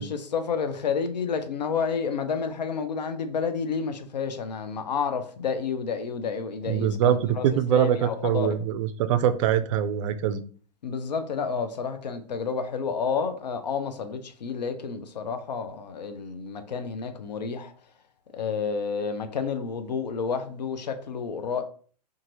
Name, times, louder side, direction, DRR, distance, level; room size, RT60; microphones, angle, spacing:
voice 1, 0.0-8.6 10.8-17.7 18.3-21.6, left 5 dB, 85° left, 0.6 m, -30 dB
voice 2, 6.7-10.4, right 9 dB, 50° right, 0.4 m, -23 dB
2.6 x 2.4 x 2.9 m
hypercardioid pair, 115°, 21 cm